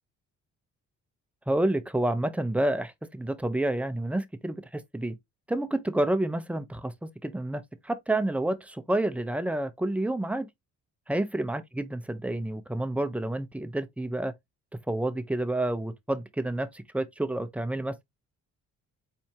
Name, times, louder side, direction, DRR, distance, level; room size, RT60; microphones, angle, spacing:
voice 1, 1.5-5.2 5.5-10.5 11.1-14.3 14.9-18.0, right 1 dB, 5° right, 0.7 m, -29 dB
4.3 x 3.4 x 2.8 m
supercardioid pair, 60°, 34 cm